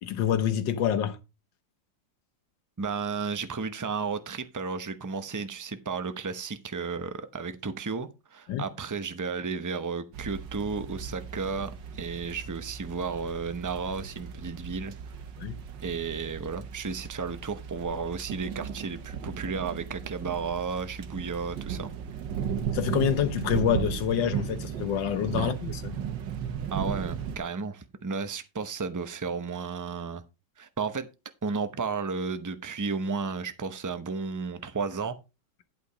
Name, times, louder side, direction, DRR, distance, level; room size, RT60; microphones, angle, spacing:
voice 1, 0.0-1.2 8.5-8.6 15.4-15.6 22.7-26.0, left 9 dB, 90° left, 1.7 m, -27 dB
voice 2, 2.8-15.1 15.8-21.9 25.4-25.5 26.7-30.2 30.6-31.1 31.4-35.2, right 5 dB, 30° right, 0.3 m, -33 dB
sound 1, 10.1-27.4, right 7 dB, 85° right, 1.8 m, -36 dB
11.5 x 5.1 x 5.1 m
omnidirectional pair, 1.9 m